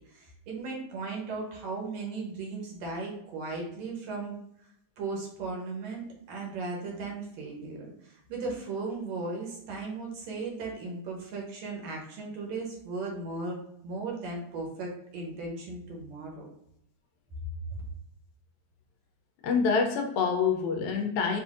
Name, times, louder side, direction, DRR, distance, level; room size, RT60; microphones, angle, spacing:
voice 1, 0.0-4.7 5.0-16.5 17.7-17.8, right 3 dB, 70° right, -1 dB, 1.9 m, -37 dB
voice 2, 19.4-21.4, left 5 dB, 80° left, 4 dB, 1.9 m, -26 dB
5.6 x 2.6 x 2.4 m, 0.77 s
omnidirectional pair, 3.4 m